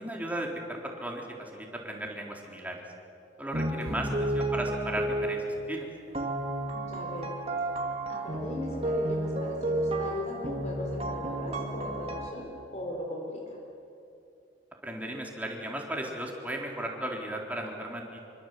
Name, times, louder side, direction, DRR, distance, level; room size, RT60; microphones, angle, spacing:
voice 1, 0.0-2.8 3.4-5.9 14.8-18.2, right 1 dB, 10° right, -1 dB, 4.0 m, -36 dB
sound 1, 3.5-5.7 6.1-12.3, right 1 dB, 35° right, 2.5 m, -32 dB
voice 2, 3.7-4.1 6.7-7.3 8.1-13.6, equal, 40° left, 0 dB, 4.1 m, -39 dB
26.5 x 24.5 x 8.0 m, 2.7 s
head